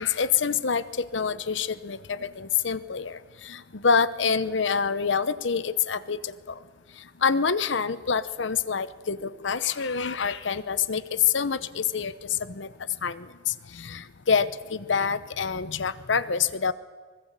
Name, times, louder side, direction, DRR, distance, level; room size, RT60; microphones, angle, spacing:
voice 1, 0.0-6.6 7.2-12.7 13.0-16.7, left 6 dB, 75° left, 15 dB, 0.8 m, -27 dB
24.0 x 21.5 x 7.5 m, 1.5 s
head